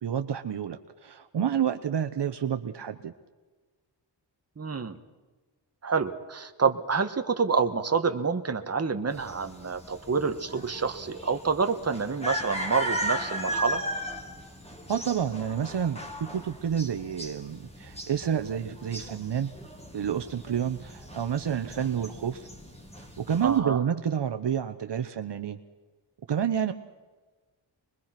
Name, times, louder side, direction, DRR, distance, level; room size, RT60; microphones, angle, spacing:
voice 1, 0.0-3.1 14.9-19.5 19.9-22.5 23.0-25.6 26.3-26.7, right 8 dB, 65° right, 8 dB, 1.1 m, -29 dB
voice 2, 4.6-5.0 5.8-13.8 23.4-23.8, right 5 dB, 35° right, 7 dB, 1.5 m, -28 dB
sound 1, 9.1-23.6, equal, 15° left, 3.6 m, -37 dB
25.5 x 21.5 x 6.0 m, 1.3 s
wide cardioid pair, 130°, 44 cm